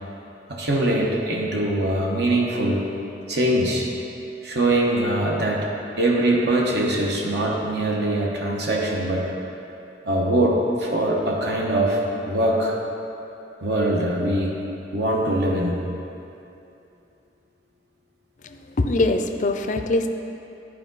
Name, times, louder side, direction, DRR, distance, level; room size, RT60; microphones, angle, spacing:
voice 1, 0.5-2.9 3.3-3.9 4.4-9.3 10.0-12.8 13.6-14.6 14.9-15.8, right 1 dB, 65° right, -2 dB, 1.0 m, -22 dB
voice 2, 18.8-20.1, left 2 dB, 45° left, 6 dB, 0.4 m, -22 dB
12.0 x 4.6 x 4.0 m, 2.8 s
head